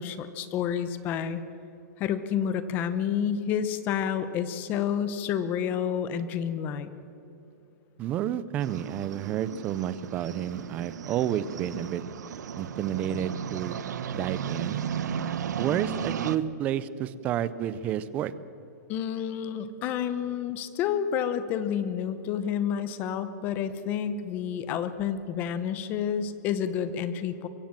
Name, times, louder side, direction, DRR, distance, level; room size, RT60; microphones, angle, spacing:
voice 1, 0.0-1.4 2.0-6.9 18.9-27.5, left 8 dB, 20° left, 13 dB, 0.8 m, -29 dB
voice 2, 8.0-12.0 12.6-13.8 14.1-14.8 15.6-18.3, right 10 dB, 15° right, 17 dB, 0.4 m, -30 dB
sound 1, 8.6-16.4, right 8 dB, 85° right, 0.9 m, -35 dB
23.5 x 15.0 x 7.5 m, 2.9 s
supercardioid pair, 175°, 9 cm